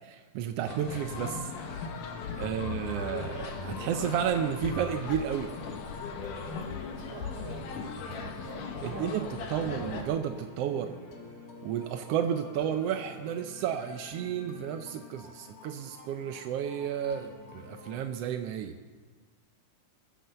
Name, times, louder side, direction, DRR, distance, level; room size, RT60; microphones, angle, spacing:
voice 1, 0.0-1.9 2.4-5.5 8.8-11.0 11.6-18.8, right 9 dB, 80° right, 7 dB, 1.4 m, -32 dB
sound 1, 0.7-10.0, left 5 dB, 80° left, 2.9 m, -38 dB
sound 2, 2.2-18.0, left 3 dB, 35° left, 1.6 m, -49 dB
voice 2, 2.4-2.7 7.0-10.0, right 7 dB, 60° right, 6 dB, 1.6 m, -47 dB
22.5 x 8.8 x 6.9 m, 1.4 s
omnidirectional pair, 3.6 m